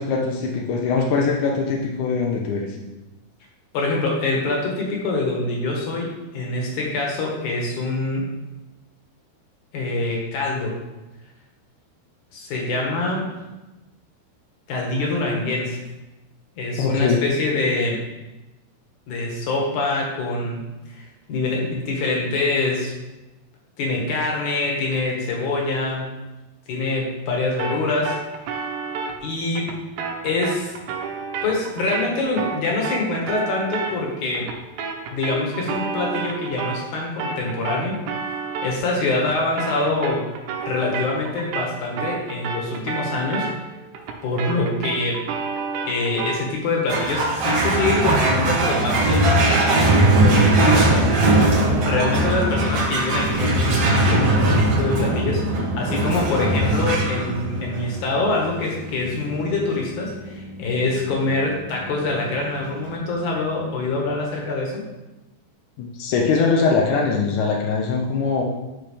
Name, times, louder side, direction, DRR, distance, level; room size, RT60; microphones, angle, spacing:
voice 1, 0.0-2.8 16.8-17.2 65.8-68.4, left 4 dB, 75° left, 0 dB, 1.8 m, -22 dB
voice 2, 3.7-8.3 9.7-10.8 12.3-13.3 14.7-15.8 16.6-18.0 19.1-20.6 20.9-22.9 23.8-26.2 26.7-28.2 29.2-29.7 30.2-30.7 31.4-34.5 35.1-38.0 38.6-40.3 40.7-43.5 44.2-45.2 45.9-51.1 51.8-64.8, left 2 dB, 55° left, -1 dB, 2.7 m, -25 dB
sound 1, 27.6-36.9 37.2-46.5, right 5 dB, 80° right, 2.9 m, -31 dB
sound 2, 46.9-63.6, right 2 dB, 55° right, 1.8 m, -21 dB
12.0 x 6.0 x 3.4 m, 1.0 s
omnidirectional pair, 4.8 m